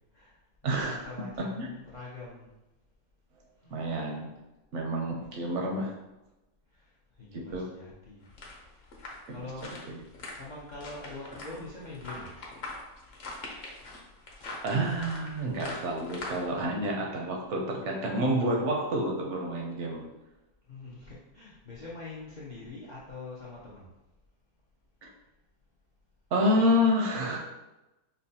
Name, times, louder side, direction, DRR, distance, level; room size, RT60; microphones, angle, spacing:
voice 1, 0.1-2.5 3.6-3.8 6.7-8.3 8.7-8.9 9.3-9.7 10.4-12.4 20.7-23.9, left 3 dB, 80° left, -7 dB, 0.4 m, -44 dB
voice 2, 0.6-1.0 1.4-1.7 3.7-4.4 4.7-5.9 7.3-7.7 9.3-10.0 14.6-20.1 25.0-25.1 26.3-27.4, equal, 65° right, 0 dB, 0.7 m, -29 dB
sound 1, 8.2-16.6, left 2 dB, 50° left, 0.8 m, -43 dB
5.4 x 2.2 x 2.7 m, 1.0 s
omnidirectional pair, 1.7 m